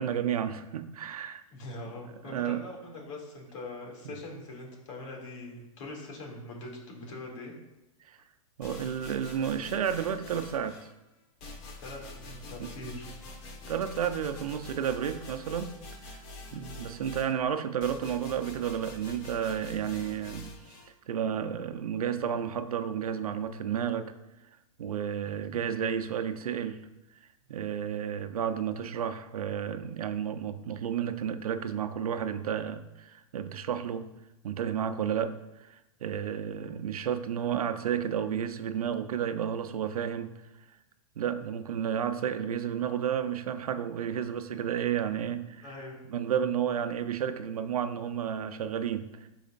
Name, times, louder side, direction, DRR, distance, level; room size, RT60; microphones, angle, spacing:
voice 1, 0.0-1.4 2.2-2.6 8.0-8.2 8.6-10.9 13.7-15.8 16.1-16.2 16.5-20.8 21.1-24.1 24.8-26.8 27.5-34.1 34.4-40.3 41.2-45.7 46.1-49.3, right 8 dB, 85° right, 10 dB, 0.7 m, -32 dB
voice 2, 1.5-7.5 11.8-13.1 16.5-16.8 25.2-25.5 45.6-46.0, left 2 dB, 60° left, -1 dB, 2.6 m, -42 dB
sound 1, 8.6-10.9 11.4-20.9, left 1 dB, 35° left, 1.4 m, -46 dB
12.5 x 4.9 x 2.6 m, 0.95 s
hypercardioid pair, 140°, 18 cm